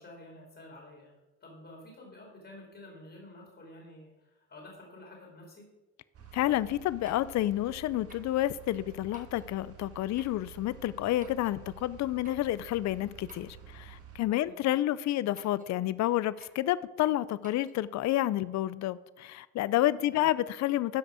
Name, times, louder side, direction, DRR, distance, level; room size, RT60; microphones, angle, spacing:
voice 1, 0.0-5.7 14.4-14.7 20.1-20.3, left 1 dB, 40° left, 2.9 m, -50 dB
sound 1, 6.1-14.2, right 9 dB, 50° right, 1.7 m, -50 dB
voice 2, 6.3-21.0, left 14 dB, 65° left, 0.4 m, -29 dB
sound 2, 7.0-7.4 8.1-8.3 9.1-9.5 10.2-10.4 11.2-11.6 12.2-12.5 13.3-13.7 14.3-14.6 15.4-15.7 16.4-16.7 17.4-17.7, right 3 dB, 25° right, 1.5 m, -56 dB
12.5 x 5.1 x 4.9 m
cardioid pair, 90°, 30 cm